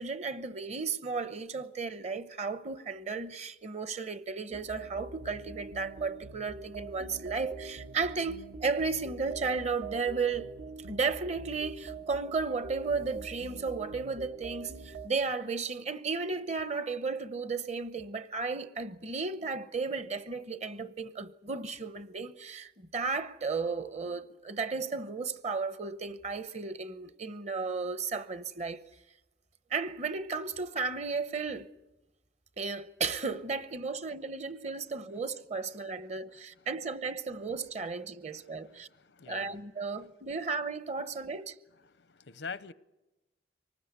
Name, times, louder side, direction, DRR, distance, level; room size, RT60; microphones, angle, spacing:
voice 1, 0.0-10.6 10.9-28.8 29.7-31.7 32.6-38.9 39.3-41.5, right 4 dB, 40° right, 0.9 m, -34 dB
sound 1, 4.5-15.1, right 3 dB, 80° right, 1.5 m, -44 dB
voice 2, 38.7-39.6 41.9-42.7, left 5 dB, 85° left, 0.7 m, -44 dB
24.5 x 19.5 x 8.2 m
head